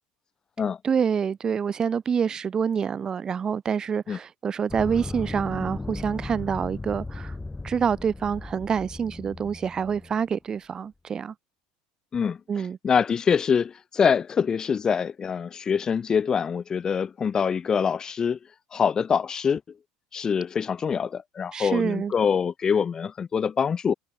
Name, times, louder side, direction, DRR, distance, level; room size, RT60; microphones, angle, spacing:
voice 1, 0.8-7.3 7.6-11.3 12.5-12.8 21.5-22.1, right 7 dB, 35° right, 2.9 m, -27 dB
sound 1, 4.7-10.2, left 2 dB, 15° left, 1.6 m, -37 dB
voice 2, 12.8-18.4 18.7-19.6 20.1-23.9, left 6 dB, 30° left, 1.4 m, -24 dB
hypercardioid pair, 90°, 2 cm